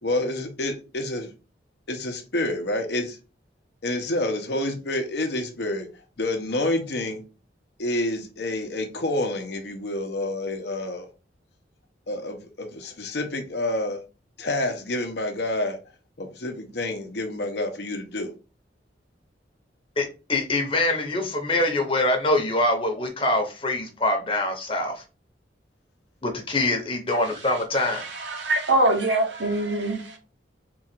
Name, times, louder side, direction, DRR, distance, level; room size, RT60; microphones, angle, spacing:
voice 1, 0.0-1.3 1.9-3.2 3.8-5.9 6.2-7.2 7.8-11.1 12.1-14.0 14.4-15.8 16.2-18.3, left 1 dB, 65° left, 0.8 m, -28 dB
voice 2, 20.0-25.0 26.2-28.0, left 2 dB, 30° left, 0.9 m, -24 dB
voice 3, 27.4-30.2, right 2 dB, 80° right, 1.0 m, -24 dB
3.9 x 2.4 x 4.4 m
head